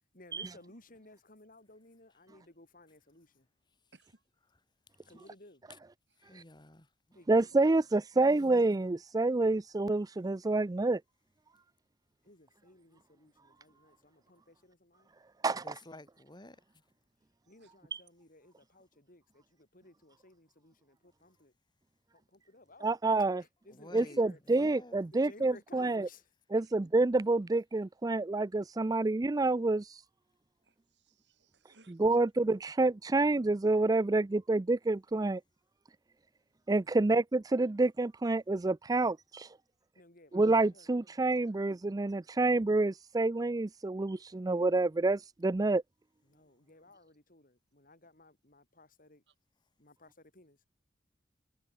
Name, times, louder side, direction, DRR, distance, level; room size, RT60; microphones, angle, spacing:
voice 1, 0.1-3.3 5.0-5.6 7.1-7.7 12.2-15.1 17.5-21.5 22.1-23.0 23.6-24.4 25.1-26.3 39.9-40.9 46.3-49.2 49.8-50.6, left 2 dB, 50° left, 6.5 m, -58 dB
voice 2, 3.9-4.2 6.1-6.2 7.5-7.8 9.2-9.3 17.6-17.7 24.2-24.4 26.6-26.7 30.6-32.0 36.8-36.9 49.3-49.4, right 3 dB, 70° right, 3.5 m, -64 dB
voice 3, 6.2-6.9 8.1-8.8 15.6-16.6 23.8-24.2 24.5-25.0, left 1 dB, 25° left, 2.7 m, -51 dB
voice 4, 7.3-11.0 15.4-15.8 17.9-18.0 22.8-23.4 23.9-26.1 26.5-30.0 32.0-35.4 36.7-39.5 40.3-45.8, right 2 dB, 20° right, 0.4 m, -28 dB
head